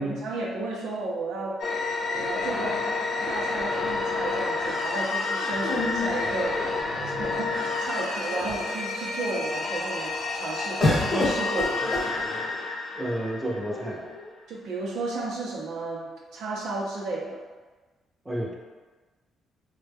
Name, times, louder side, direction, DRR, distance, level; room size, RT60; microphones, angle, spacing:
voice 1, 0.0-1.6 2.0-2.8 3.3-11.9 14.5-17.4, right 2 dB, 80° right, -2 dB, 0.6 m, -33 dB
sound 1, 1.6-14.1, left 3 dB, 65° left, 0.5 m, -30 dB
sound 2, 2.5-3.6 5.6-7.1 7.9-8.0 8.2-8.8 10.8-12.7 13.6-14.3, left 2 dB, 20° left, 0.9 m, -30 dB
voice 2, 12.9-14.0 18.2-18.6, right 1 dB, 10° right, -3 dB, 0.6 m, -30 dB
3.1 x 2.2 x 3.4 m, 1.3 s
cardioid pair, 90°, 0 cm